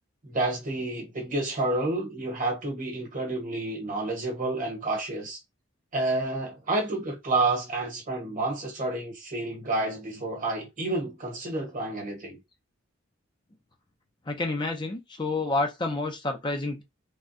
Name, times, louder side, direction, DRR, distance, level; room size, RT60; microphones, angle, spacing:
voice 1, 0.2-5.4 5.9-12.4, right 2 dB, 40° right, 1.1 m, -29 dB
voice 2, 14.3-16.8, left 2 dB, 25° left, 0.5 m, -29 dB
3.5 x 2.2 x 2.6 m
head